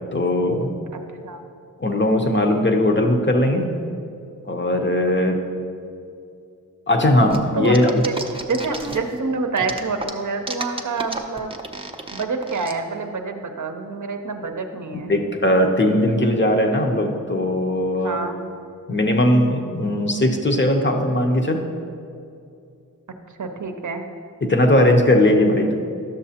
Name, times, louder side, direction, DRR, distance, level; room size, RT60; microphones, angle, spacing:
voice 1, 0.1-0.7 1.8-3.8 4.5-5.4 6.9-7.9 14.9-18.2 18.9-21.7 24.4-25.7, left 1 dB, 35° left, 3 dB, 0.7 m, -19 dB
voice 2, 0.9-1.4 7.5-8.1 8.5-11.6 12.1-15.1 17.9-18.4 23.4-24.1, right 4 dB, 60° right, 5 dB, 0.6 m, -27 dB
sound 1, 7.3-9.2 9.6-12.7, right 2 dB, 15° right, 0.5 m, -31 dB
11.5 x 6.5 x 2.8 m, 2.5 s
wide cardioid pair, 80°, 34 cm